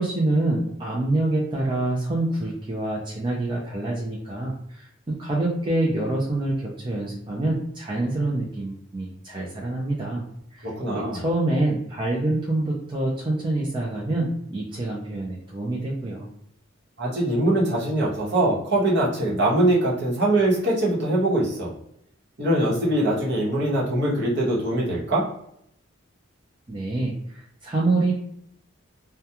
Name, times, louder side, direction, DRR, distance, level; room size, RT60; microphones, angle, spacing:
voice 1, 0.0-10.3 10.5-16.3 26.7-28.1, right 2 dB, 25° right, -4 dB, 0.4 m, -26 dB
voice 2, 10.6-11.2 17.0-21.7 22.4-25.3, right 1 dB, 55° right, -5 dB, 1.0 m, -22 dB
2.3 x 2.2 x 2.8 m, 0.73 s
head